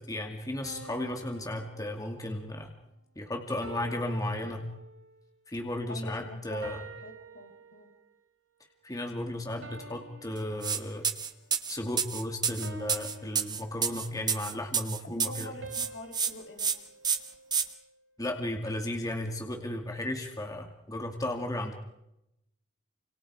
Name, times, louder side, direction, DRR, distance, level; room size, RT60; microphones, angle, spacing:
voice 1, 0.0-2.7 3.2-4.6 5.5-6.8 8.8-11.0 11.7-15.5 18.2-21.7, left 1 dB, 20° left, 3 dB, 2.5 m, -34 dB
sound 1, 0.6-2.6 3.6-5.3 6.6-8.2 9.6-11.3 12.6-14.2 15.6-18.0, right 2 dB, 80° right, 2.9 m, -48 dB
voice 2, 5.9-7.9 15.1-16.7, left 1 dB, 70° left, 3 dB, 4.8 m, -44 dB
sound 2, 10.6-10.8 11.0-15.5 15.7-16.3 16.6-16.7 17.0-17.6, right 6 dB, 25° right, 1.4 m, -29 dB
29.0 x 27.0 x 4.9 m, 0.84 s
head